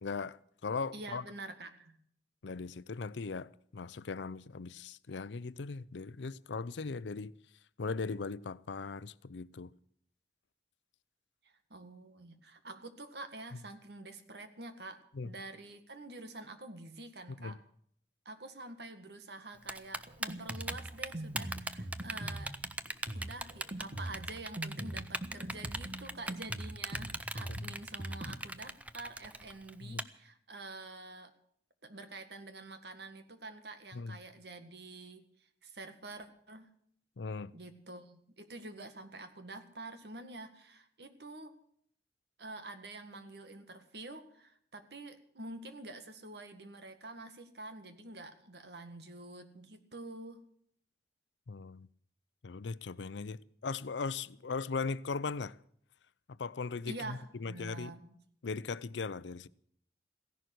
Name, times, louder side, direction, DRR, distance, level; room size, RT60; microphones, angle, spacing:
voice 1, 0.0-1.2 2.4-7.3 7.8-9.7 15.1-15.3 17.3-17.6 27.5-27.7 29.8-30.0 33.9-34.2 37.2-37.5 51.5-51.9 52.4-55.6 56.3-57.9 58.4-59.5, left 4 dB, 85° left, 0.6 m, -39 dB
voice 2, 0.9-2.0 11.4-17.6 18.3-22.5 23.1-31.3 31.8-35.3 35.6-36.7 37.5-41.5 42.4-50.4 56.9-58.1, right 2 dB, 70° right, 1.9 m, -47 dB
Typing, 19.7-30.0, right 2 dB, 10° right, 0.6 m, -39 dB
Drum kit, 20.1-28.4, right 1 dB, 40° right, 1.4 m, -42 dB
16.0 x 11.0 x 7.7 m
head